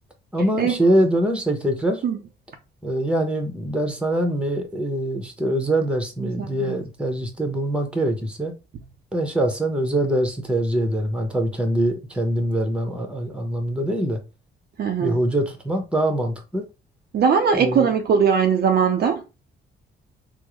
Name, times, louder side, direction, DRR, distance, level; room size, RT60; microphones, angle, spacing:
voice 1, 0.3-2.0 2.8-8.5 9.1-14.2 15.0-16.6 17.5-17.9, right 1 dB, 5° right, 0.9 m, -23 dB
voice 2, 6.2-6.8 14.8-15.2 17.1-19.2, right 6 dB, 55° right, 0.5 m, -20 dB
3.6 x 2.1 x 3.1 m
cardioid pair, 90°, 20 cm